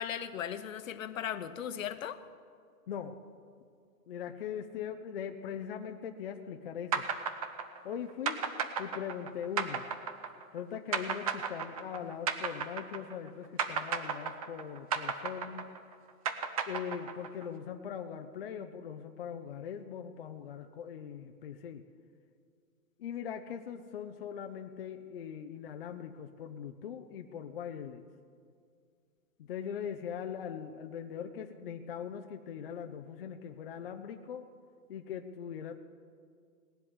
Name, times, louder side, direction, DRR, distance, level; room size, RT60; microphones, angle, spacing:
voice 1, 0.0-2.2, left 9 dB, 55° left, 12 dB, 1.0 m, -37 dB
voice 2, 2.9-3.2 4.1-7.1 7.8-8.5 8.8-9.9 10.5-15.7 16.7-21.8 23.0-28.0 29.4-34.5 34.9-35.8, left 8 dB, 40° left, 5 dB, 0.6 m, -41 dB
sound 1, 6.9-13.3 13.6-17.4, right 7 dB, 25° right, 0.7 m, -34 dB
18.5 x 7.8 x 9.9 m, 2.2 s
hypercardioid pair, 160°, 46 cm